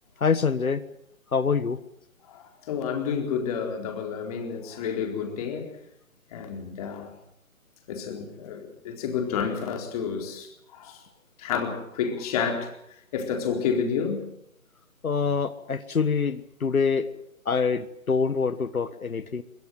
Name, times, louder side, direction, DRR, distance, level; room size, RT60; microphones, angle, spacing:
voice 1, 0.2-0.8 1.3-1.8 15.0-17.1 17.4-19.4, left 5 dB, 85° left, 1.5 m, -25 dB
voice 2, 2.2-5.8 6.3-7.1 7.9-11.0 11.4-12.7 13.1-14.3, left 6 dB, 25° left, 4.2 m, -30 dB
23.0 x 23.0 x 7.7 m
figure-of-eight pair, 155°, 41 cm